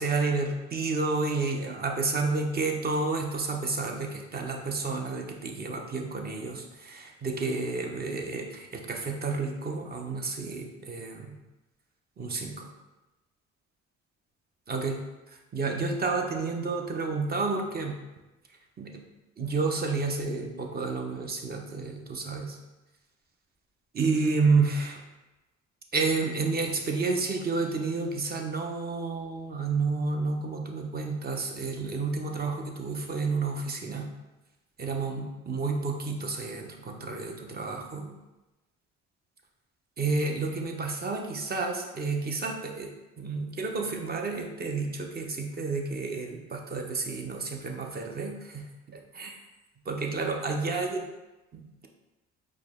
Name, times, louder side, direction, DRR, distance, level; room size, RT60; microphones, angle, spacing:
voice 1, 0.0-11.4 12.2-12.7 14.7-15.0 15.5-18.0 18.8-19.0 19.4-22.6 23.9-25.0 25.9-34.1 34.8-38.1 40.0-49.4 49.9-51.0 51.5-51.7, right 3 dB, 30° right, 2 dB, 0.6 m, -30 dB
4.6 x 2.0 x 3.5 m, 1.1 s
supercardioid pair, 75°, 29 cm